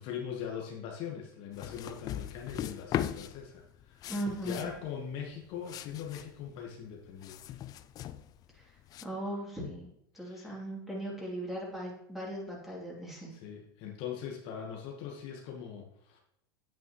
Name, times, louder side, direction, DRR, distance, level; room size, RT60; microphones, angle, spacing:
voice 1, 0.0-4.1 4.4-7.4 10.1-10.6 13.3-16.2, left 8 dB, 50° left, 0 dB, 1.3 m, -41 dB
sound 1, 1.5-9.0, left 11 dB, 30° left, 0.4 m, -40 dB
voice 2, 4.1-4.7 8.6-8.7 9.0-9.9 10.1-13.3, right 1 dB, ahead, -4 dB, 3.1 m, -38 dB
9.0 x 8.5 x 3.1 m, 0.77 s
supercardioid pair, 120°, 12 cm